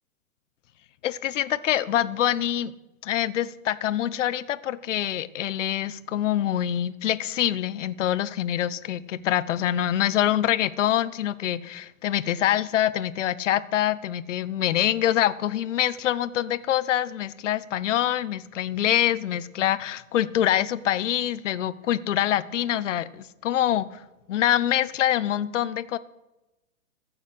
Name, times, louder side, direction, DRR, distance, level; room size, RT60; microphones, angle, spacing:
voice 1, 1.0-2.7 3.0-24.0 24.3-26.0, left 11 dB, 55° left, 17 dB, 0.9 m, -25 dB
14.5 x 7.3 x 8.3 m, 0.99 s
hypercardioid pair, 150°, 43 cm